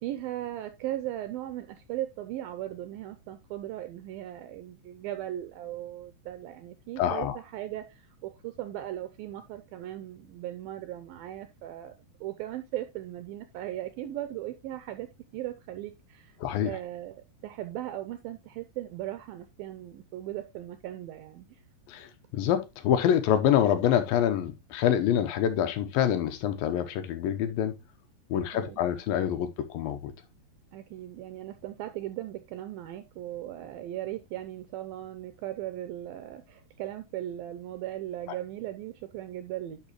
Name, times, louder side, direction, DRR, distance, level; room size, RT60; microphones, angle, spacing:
voice 1, 0.0-11.9 12.2-15.1 15.3-16.4 16.7-21.6 28.3-28.9 30.7-39.8, right 13 dB, 80° right, 2.3 m, -38 dB
voice 2, 7.0-7.4 16.4-16.7 21.9-27.8 28.3-30.1, left 10 dB, 75° left, 2.4 m, -26 dB
10.5 x 5.7 x 3.0 m
omnidirectional pair, 4.6 m